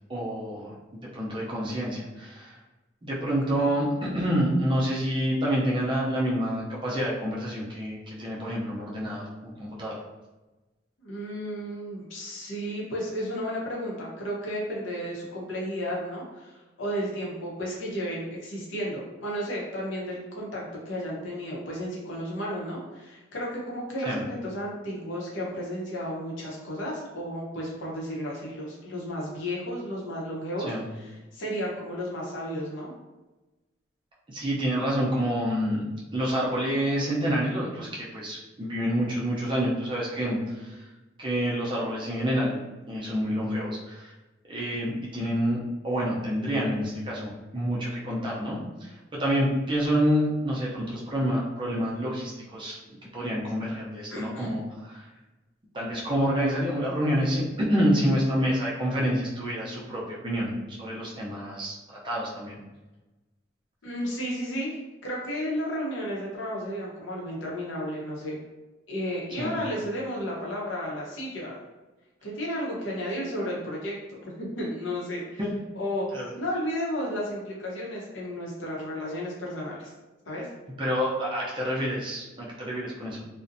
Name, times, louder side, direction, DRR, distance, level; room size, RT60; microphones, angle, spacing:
voice 1, 0.1-2.6 3.0-9.9 24.0-24.2 30.6-30.9 34.3-35.8 36.1-40.8 41.2-44.1 44.5-45.6 45.8-52.8 53.1-55.1 55.7-61.8 62.0-62.6 69.4-69.6 76.1-76.3 80.8-83.3, equal, 25° right, -5 dB, 0.5 m, -28 dB
voice 2, 11.0-32.9 54.1-54.5 63.8-68.4 68.9-71.6 72.2-75.4 75.8-79.9 80.3-80.5, equal, 80° left, -4 dB, 0.7 m, -33 dB
2.5 x 2.1 x 2.6 m, 1.1 s
head